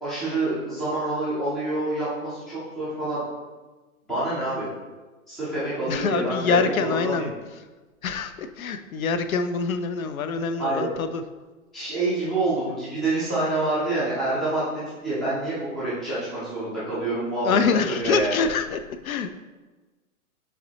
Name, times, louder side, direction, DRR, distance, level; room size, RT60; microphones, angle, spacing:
voice 1, 0.0-3.3 4.1-4.7 5.3-7.3 10.6-10.9 11.7-14.6 15.0-18.3, right 2 dB, ahead, -11 dB, 0.4 m, -27 dB
voice 2, 5.9-7.3 8.0-11.2 17.4-19.3, left 5 dB, 70° left, 9 dB, 0.5 m, -25 dB
5.7 x 3.2 x 2.8 m, 1.2 s
figure-of-eight pair, 115°, 43 cm